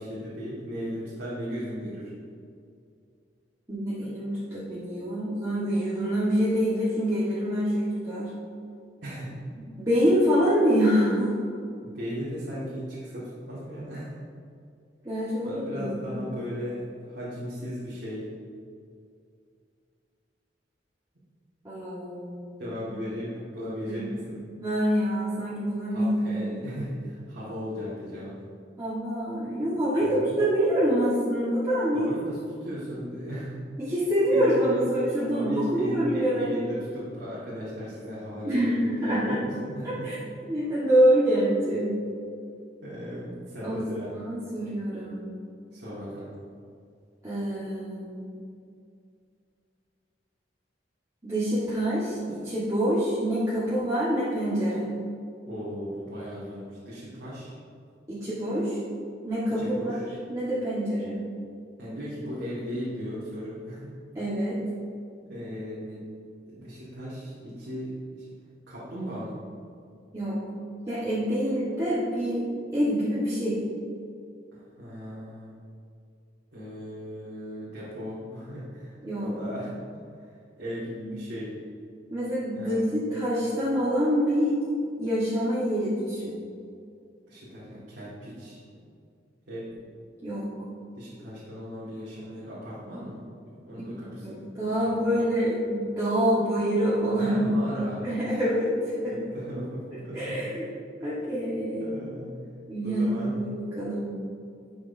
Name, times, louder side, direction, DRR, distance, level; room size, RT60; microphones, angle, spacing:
voice 1, 0.0-2.1 9.0-9.3 11.8-14.1 15.4-18.3 22.6-24.4 25.9-28.4 30.0-30.3 31.9-33.6 34.3-34.9 35.3-40.1 42.8-44.1 45.7-46.3 55.4-57.5 59.6-60.1 61.8-64.0 65.3-66.1 66.5-68.2 68.7-69.4 74.5-75.6 76.5-79.9 80.3-81.5 82.5-82.9 87.3-88.6 89.5-89.7 90.9-94.6 94.8-95.1 97.2-98.1 99.1-100.5 101.0-101.1 101.8-102.4 102.8-103.4, equal, 75° right, -9 dB, 1.9 m, -37 dB
voice 2, 3.7-8.3 9.8-11.3 15.0-16.2 21.6-22.6 22.9-23.0 23.9-24.1 24.6-26.6 28.8-32.1 33.8-36.7 38.4-39.4 40.0-40.2 40.5-41.9 43.6-43.8 44.2-45.2 47.2-48.3 51.2-54.8 58.1-58.8 59.2-59.9 60.3-61.2 64.1-64.6 70.1-70.4 70.9-72.5 72.7-73.6 79.0-79.3 81.0-81.1 82.1-84.6 85.0-86.4 90.2-90.5 94.0-97.5 98.0-99.3 100.1-100.7 101.0-101.9 102.7-104.1, equal, 20° right, -11 dB, 1.5 m, -26 dB
11.0 x 6.2 x 2.7 m, 2.4 s
head